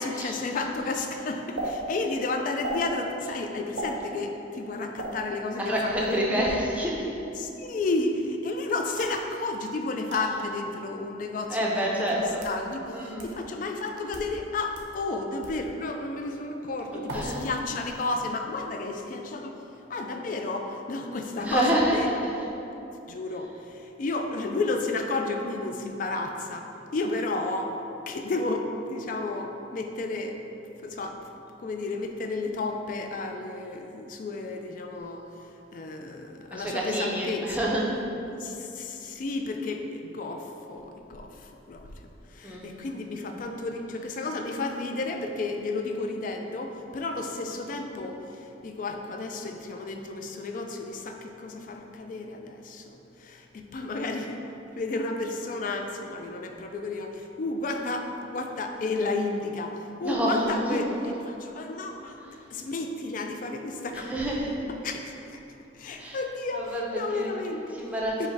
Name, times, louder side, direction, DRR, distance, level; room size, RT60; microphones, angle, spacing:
voice 1, 0.0-6.6 7.4-19.6 19.9-22.1 23.1-27.7 28.1-30.4 30.8-31.2 31.6-35.3 35.7-37.7 38.3-41.9 42.3-54.4 54.8-64.3 64.7-65.0 65.3-65.4 65.7-67.9 68.2-68.3, left 3 dB, 45° left, 4 dB, 0.3 m, -32 dB
sound 1, 1.6-1.7 2.6-2.8 3.8-4.0 5.0-5.1 6.0-6.3 9.0-9.2 10.1-10.2 11.2-11.3 12.1-12.6 13.2-13.3 14.0-14.3 14.7-14.9 15.4-15.6 17.1-17.5 17.8-18.2, right 1 dB, 80° right, 0.7 m, -35 dB
voice 2, 5.6-7.1 11.5-12.5 12.9-13.3 16.9-17.5 21.4-22.5 36.5-38.0 42.4-42.7 60.0-60.8 63.9-64.5 66.0-66.2 66.5-67.3 67.7-68.3, right 1 dB, 10° right, -4 dB, 0.5 m, -28 dB
5.5 x 2.1 x 4.6 m, 3.0 s
head